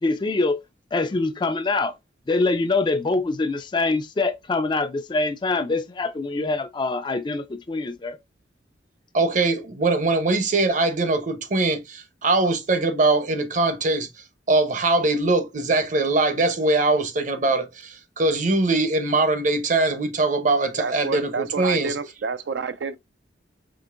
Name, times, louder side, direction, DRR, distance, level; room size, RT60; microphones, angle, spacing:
voice 1, 0.0-0.6 0.9-1.9 2.3-8.2, left 3 dB, 25° left, 0.4 m, -24 dB
voice 2, 9.1-14.1 14.5-21.9, right 2 dB, 45° right, 0.7 m, -22 dB
voice 3, 20.8-23.0, right 4 dB, 70° right, 0.4 m, -29 dB
5.1 x 2.9 x 2.5 m
head